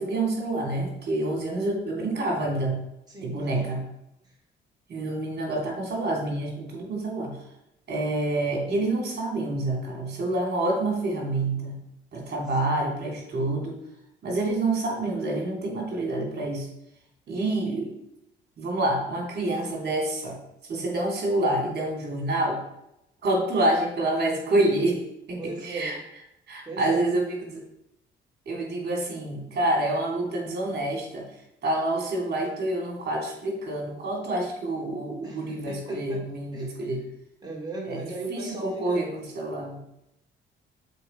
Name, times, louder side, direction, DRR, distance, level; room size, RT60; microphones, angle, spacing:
voice 1, 0.0-2.8 3.2-3.8 4.9-7.4 7.9-11.8 12.1-13.7 14.2-16.7 17.3-17.9 18.6-20.4 20.7-22.6 23.2-25.0 25.3-26.0 26.5-27.2 27.5-27.6 28.5-31.3 31.6-37.0 37.9-38.0 38.3-39.8, right 2 dB, 55° right, 0 dB, 2.9 m, -27 dB
voice 2, 3.1-3.6 4.2-4.3 12.6-13.0 25.3-26.0 26.7-27.0 35.2-36.3 36.5-36.7 37.4-39.1, right 2 dB, 20° right, -2 dB, 2.3 m, -37 dB
6.8 x 4.7 x 4.5 m, 0.82 s
cardioid pair, 90°, 20 cm